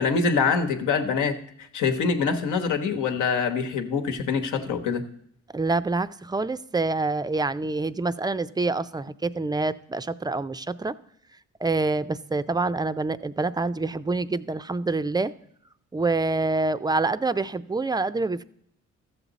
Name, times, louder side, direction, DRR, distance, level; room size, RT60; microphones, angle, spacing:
voice 1, 0.0-5.0, left 5 dB, 80° left, 6 dB, 1.2 m, -25 dB
voice 2, 5.5-10.9 11.6-15.3 15.9-18.4, right 3 dB, 15° right, 13 dB, 0.4 m, -26 dB
13.5 x 7.3 x 4.0 m, 0.70 s
cardioid pair, 90°, 30 cm